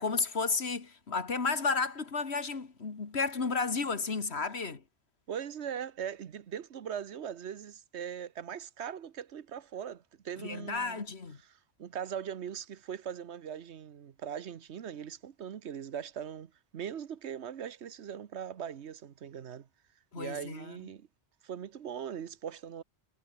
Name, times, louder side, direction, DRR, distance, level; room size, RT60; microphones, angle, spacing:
voice 1, 0.0-4.8 10.4-11.4 20.1-20.8, left 4 dB, 75° left, 2.2 m, -32 dB
voice 2, 5.3-11.0 11.8-19.7 20.1-21.1 21.4-22.8, right 8 dB, 90° right, 1.2 m, -40 dB
omnidirectional pair, 1.1 m